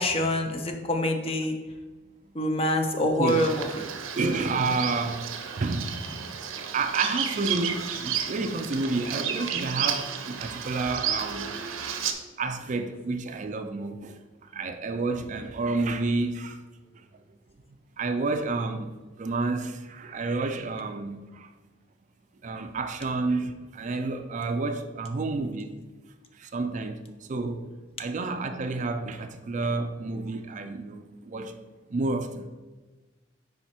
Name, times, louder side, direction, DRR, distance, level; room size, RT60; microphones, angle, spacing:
voice 1, 0.0-1.6 2.3-3.8, left 1 dB, 30° left, 0.6 m, -26 dB
voice 2, 3.0-3.5 4.2-6.3 6.7-11.8 12.4-16.6 18.0-18.9 19.2-21.5 22.4-25.7 26.4-27.7 28.0-31.5 31.9-32.5, right 3 dB, 40° right, 0.4 m, -30 dB
Bird vocalization bird call bird song, 3.3-12.1, right 8 dB, 90° right, 0.6 m, -32 dB
4.9 x 4.6 x 4.3 m
head